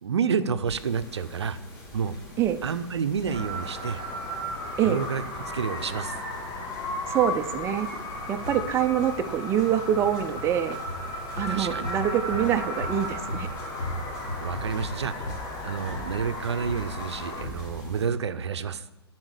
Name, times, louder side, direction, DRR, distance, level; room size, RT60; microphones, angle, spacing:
voice 1, 0.0-1.6 1.9-2.2 2.6-4.0 4.8-5.2 5.5-6.1 11.5-11.9 14.4-18.9, right 6 dB, 85° right, 12 dB, 0.6 m, -29 dB
sound 1, 0.6-18.1, left 1 dB, 25° left, 3.2 m, -40 dB
sound 2, 3.3-17.4, left 1 dB, 55° left, 3.1 m, -35 dB
voice 2, 7.1-7.9 8.3-10.8 11.4-13.5, right 10 dB, 20° right, 8 dB, 0.5 m, -25 dB
9.6 x 4.4 x 6.4 m, 0.97 s
hypercardioid pair, 125°, 14 cm